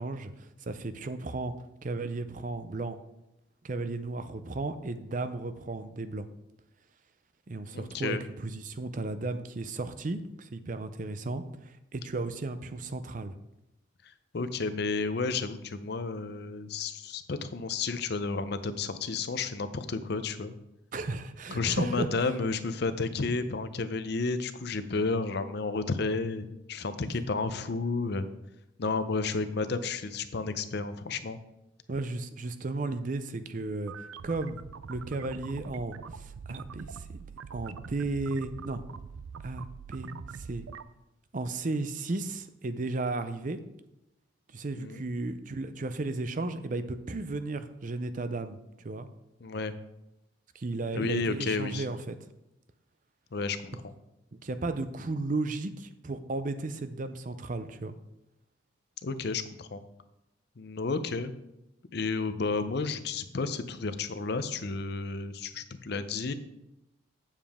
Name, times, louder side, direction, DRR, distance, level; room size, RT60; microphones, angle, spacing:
voice 1, 0.0-1.5 1.8-3.0 3.6-6.3 7.5-13.4 20.9-22.1 31.9-34.6 34.9-37.3 37.5-38.8 39.4-40.7 41.3-43.6 44.5-49.1 50.5-52.2 54.3-58.0, right 2 dB, 40° right, 11 dB, 0.5 m, -34 dB
voice 2, 7.7-8.2 14.3-20.5 21.5-28.3 28.8-31.4 44.8-45.0 49.4-49.7 50.9-51.8 53.3-53.7 59.0-59.8 60.6-61.3 61.9-66.3, left 4 dB, 55° left, 11 dB, 0.6 m, -31 dB
sound 1, 33.7-40.8, right 6 dB, 90° right, 0.4 m, -44 dB
8.9 x 7.2 x 3.5 m, 0.89 s
head